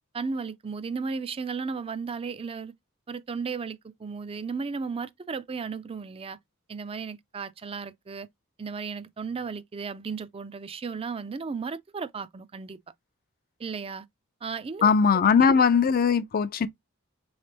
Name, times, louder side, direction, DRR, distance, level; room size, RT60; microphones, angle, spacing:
voice 1, 0.1-2.7 3.1-6.4 6.7-8.3 8.6-12.8 13.6-14.0 14.4-14.9, right 5 dB, 25° right, 0.4 m, -34 dB
voice 2, 14.8-16.7, left 6 dB, 45° left, 0.4 m, -20 dB
4.3 x 3.2 x 2.9 m
head